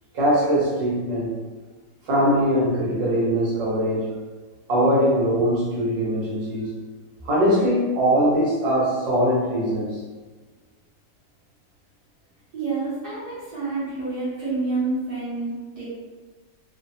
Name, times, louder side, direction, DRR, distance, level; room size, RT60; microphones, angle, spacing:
voice 1, 0.1-1.4 2.0-4.2 4.7-6.7 7.2-10.0, equal, 80° right, -8 dB, 1.5 m, -21 dB
voice 2, 12.5-15.8, right 3 dB, 60° right, -11 dB, 1.5 m, -28 dB
3.6 x 2.1 x 2.6 m, 1.3 s
omnidirectional pair, 2.0 m